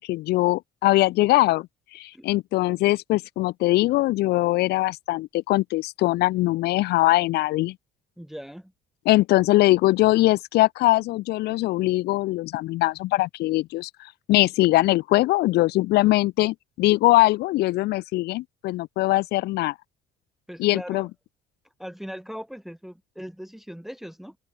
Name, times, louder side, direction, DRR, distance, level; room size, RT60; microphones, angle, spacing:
voice 1, 0.1-1.7 1.9-7.8 9.1-13.9 14.3-19.7 20.6-21.1, left 18 dB, 75° left, 0.5 m, -21 dB
voice 2, 8.2-8.7 20.5-21.1 21.8-24.4, equal, ahead, 1.3 m, -39 dB
open air
cardioid pair, 110°, 17 cm